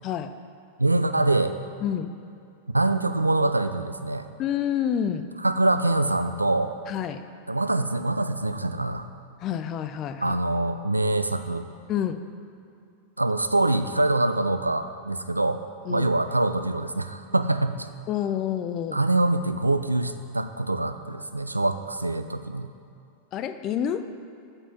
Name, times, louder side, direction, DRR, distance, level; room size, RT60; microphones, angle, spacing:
voice 1, 0.0-0.3 1.8-2.1 4.4-5.3 6.9-7.2 9.4-10.4 11.9-12.2 15.9-16.1 18.1-19.0 23.3-24.1, left 9 dB, 35° left, 10 dB, 0.4 m, -28 dB
voice 2, 0.8-1.6 2.7-4.3 5.4-6.7 7.5-9.1 10.2-11.6 13.2-15.6 15.9-17.9 18.9-22.7, right 2 dB, 85° right, 10 dB, 0.3 m, -24 dB
7.9 x 4.3 x 5.8 m, 2.5 s
figure-of-eight pair, 90°, 0 cm